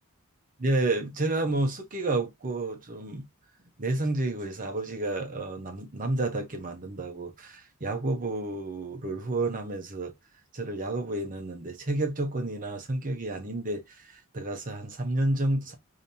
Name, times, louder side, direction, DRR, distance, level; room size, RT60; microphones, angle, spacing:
voice 1, 0.6-3.2 3.8-10.1 10.5-15.7, right 2 dB, 40° right, 0.8 m, -30 dB
5.1 x 2.8 x 2.7 m
head